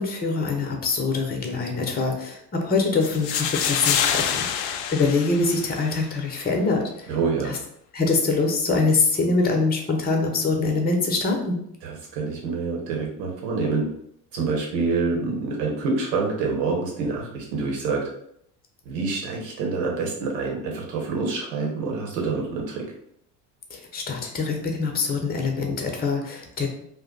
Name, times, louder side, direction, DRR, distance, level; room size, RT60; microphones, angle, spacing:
voice 1, 0.0-7.1 7.4-7.6 7.9-11.6 23.7-26.7, left 3 dB, 20° left, 2 dB, 0.8 m, -24 dB
sound 1, 3.0-6.0, left 8 dB, 55° left, 0.5 m, -26 dB
voice 2, 7.1-7.5 11.8-13.8 14.3-18.0 18.8-22.8, right 4 dB, 75° right, -1 dB, 1.1 m, -26 dB
2.5 x 2.1 x 3.8 m, 0.71 s
hypercardioid pair, 70°, 49 cm